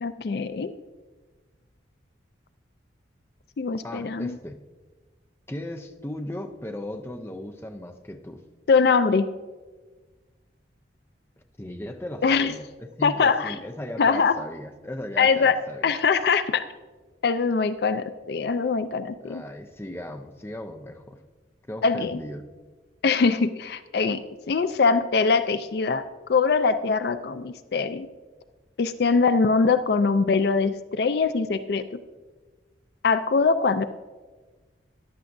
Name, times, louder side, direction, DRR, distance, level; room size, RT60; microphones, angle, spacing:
voice 1, 0.0-0.7 3.6-4.4 8.7-9.3 12.2-12.6 13.0-13.6 14.0-14.4 15.2-15.6 15.8-16.7 17.2-19.4 21.8-22.2 23.0-28.1 28.8-32.0 33.0-33.8, left 5 dB, 60° left, 12 dB, 0.4 m, -22 dB
voice 2, 3.8-4.6 5.5-8.4 11.6-12.7 13.0-15.9 19.2-21.2 21.7-22.4, left 1 dB, 15° left, 5 dB, 0.6 m, -37 dB
14.5 x 11.0 x 2.6 m, 1.3 s
head